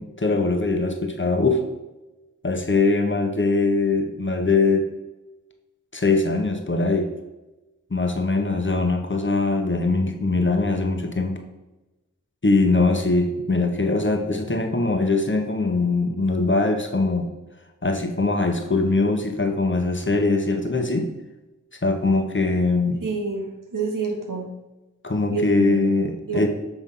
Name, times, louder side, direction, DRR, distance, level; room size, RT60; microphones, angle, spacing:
voice 1, 0.0-1.7 2.4-4.9 5.9-7.1 7.9-11.4 12.4-17.3 17.8-21.1 21.8-23.0 25.0-26.5, left 3 dB, 35° left, 4 dB, 1.0 m, -22 dB
voice 2, 23.0-24.5 25.3-25.8 26.3-26.5, right 4 dB, 80° right, 2 dB, 1.3 m, -27 dB
7.0 x 3.5 x 5.4 m, 1.1 s
wide cardioid pair, 45°, 32 cm